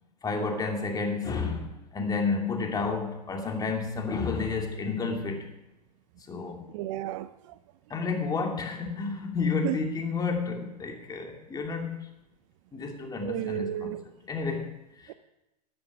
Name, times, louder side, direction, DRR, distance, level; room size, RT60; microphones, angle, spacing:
voice 1, 0.2-5.6 6.3-6.6 7.9-12.1 12.7-14.0 14.3-14.7 15.0-15.1, left 4 dB, 20° left, 2 dB, 2.7 m, -31 dB
voice 2, 6.7-7.6 9.6-9.8 13.2-14.0 15.1-15.2, right 15 dB, 50° right, 14 dB, 0.6 m, -33 dB
12.5 x 11.5 x 6.2 m, 0.94 s
hypercardioid pair, 105°, 21 cm